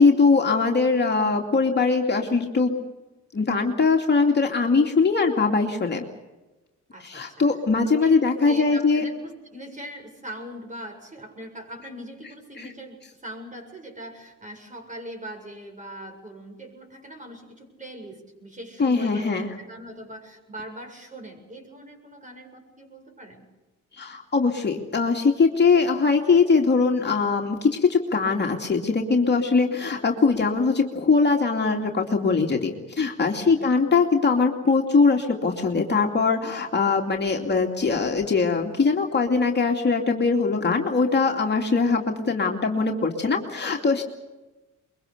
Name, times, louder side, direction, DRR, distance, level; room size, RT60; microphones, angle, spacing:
voice 1, 0.0-2.7 3.3-6.1 7.0-9.0 12.6-12.7 18.8-19.5 24.0-44.0, left 4 dB, 35° left, 2 dB, 2.6 m, -21 dB
voice 2, 6.9-7.5 7.8-8.1 8.4-19.3 19.6-23.4 33.3-33.7, right 1 dB, 25° right, 4 dB, 7.6 m, -41 dB
23.5 x 23.0 x 6.8 m, 1.1 s
cardioid pair, 90°, 30 cm